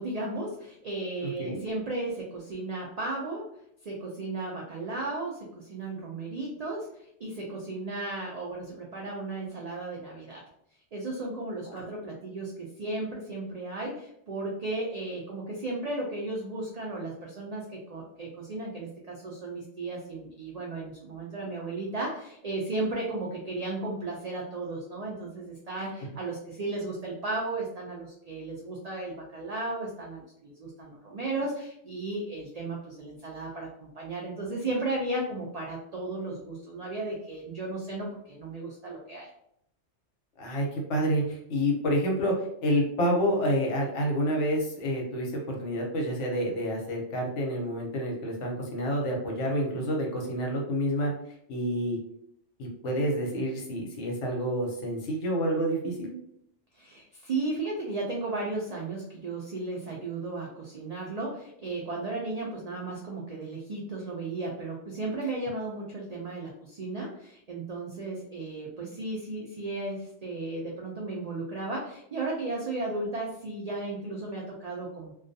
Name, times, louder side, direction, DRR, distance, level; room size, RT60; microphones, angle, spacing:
voice 1, 0.0-3.5 3.8-10.4 10.9-39.3 56.7-75.1, right 2 dB, 75° right, -2 dB, 0.3 m, -35 dB
voice 2, 1.2-1.6 11.7-11.8 40.4-51.1 51.5-52.0 52.6-56.1, equal, 80° left, 0 dB, 1.0 m, -28 dB
2.3 x 2.2 x 2.5 m, 0.73 s
omnidirectional pair, 1.2 m